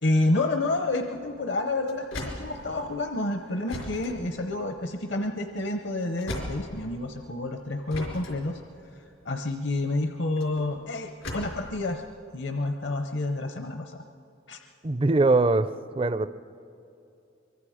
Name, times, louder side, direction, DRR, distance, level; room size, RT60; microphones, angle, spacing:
voice 1, 0.0-8.6 9.3-12.0 12.3-14.0 14.5-14.6, left 2 dB, 60° left, 5 dB, 0.8 m, -29 dB
sound 1, 0.6-7.3 7.9-11.7, left 1 dB, 85° left, 4.7 m, -39 dB
voice 2, 14.8-15.7 16.0-16.3, right 3 dB, 25° right, 14 dB, 0.4 m, -21 dB
24.0 x 23.5 x 5.0 m, 2.7 s
head